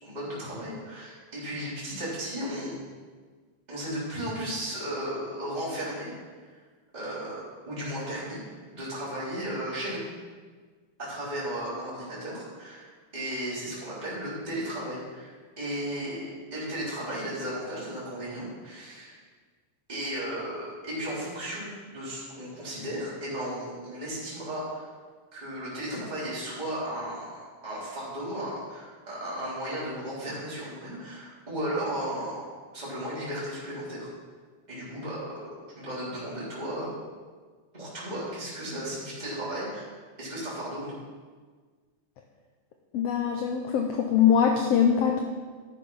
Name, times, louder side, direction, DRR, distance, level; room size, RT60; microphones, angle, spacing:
voice 1, 0.0-2.8 3.7-6.1 6.9-10.0 11.0-19.2 19.9-24.9 25.3-34.1 34.7-35.4 35.8-36.9 37.7-39.9 40.2-40.9, right 1 dB, 10° right, -9 dB, 3.5 m, -35 dB
voice 2, 42.9-45.2, left 8 dB, 85° left, 3 dB, 1.4 m, -23 dB
12.0 x 6.7 x 5.5 m, 1.5 s
omnidirectional pair, 3.8 m